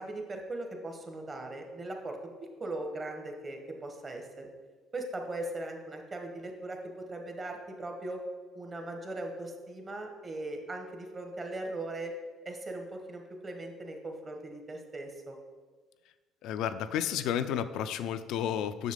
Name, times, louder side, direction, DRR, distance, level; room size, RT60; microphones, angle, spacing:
voice 1, 0.0-2.2 2.6-4.5 4.9-8.2 8.5-12.1 12.4-15.4, right 2 dB, 35° right, 3 dB, 1.3 m, -39 dB
voice 2, 16.4-18.9, left 9 dB, 75° left, 12 dB, 0.4 m, -32 dB
7.3 x 6.2 x 3.7 m, 1.4 s
supercardioid pair, 75°, 0 cm